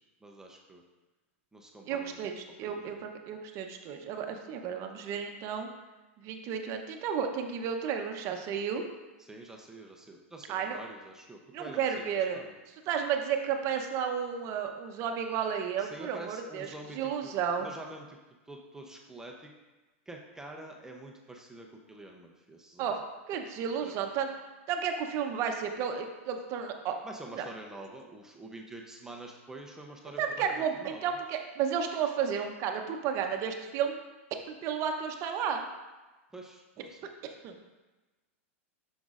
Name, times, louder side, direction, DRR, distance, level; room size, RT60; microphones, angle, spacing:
voice 1, 0.2-0.8 1.5-2.3 2.6-3.0 9.2-12.6 15.8-17.3 17.6-18.2 18.5-19.5 20.1-22.9 23.9-24.0 27.0-30.2 30.5-31.2 36.3-37.1, right 2 dB, 5° right, 1 dB, 0.7 m, -47 dB
voice 2, 1.9-5.7 6.2-8.8 10.5-10.8 11.5-12.4 12.9-16.7 16.9-17.7 22.8-23.0 23.3-24.3 24.7-27.0 27.3-27.4 30.2-34.0 34.5-35.6 37.4-37.5, right 7 dB, 40° right, 4 dB, 0.8 m, -32 dB
7.7 x 6.2 x 2.5 m, 1.2 s
hypercardioid pair, 125°, 7 cm